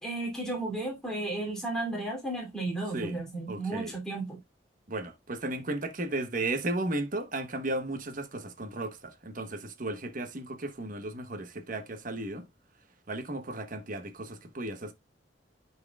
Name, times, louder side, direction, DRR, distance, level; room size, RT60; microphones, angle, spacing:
voice 1, 0.0-4.4, right 2 dB, 5° left, 2.8 m, -34 dB
voice 2, 3.5-3.9 4.9-12.5 13.1-14.9, right 2 dB, 50° right, 1.2 m, -35 dB
10.5 x 4.6 x 2.3 m
head